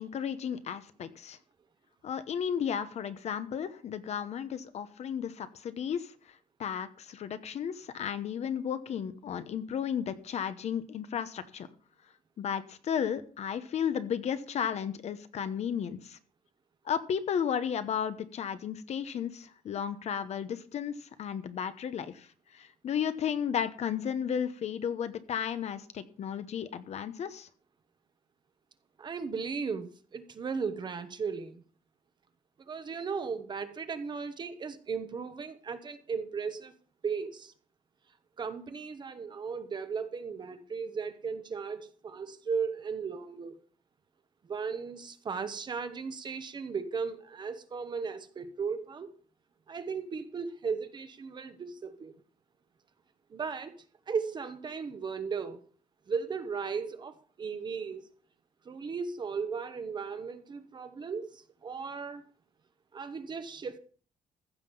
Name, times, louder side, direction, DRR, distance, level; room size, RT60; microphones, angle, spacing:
voice 1, 0.0-1.4 2.0-6.1 6.6-11.7 12.4-16.2 16.8-22.3 22.5-27.5, left 8 dB, 50° left, 1.0 m, -34 dB
voice 2, 29.0-31.6 32.7-36.7 37.0-37.5 38.4-43.5 44.4-49.1 49.7-52.2 53.3-53.7 54.1-55.6 56.1-58.0 58.6-62.2 62.9-63.8, right 5 dB, 30° right, 1.1 m, -36 dB
15.0 x 5.8 x 7.1 m
cardioid pair, 180°, 15 cm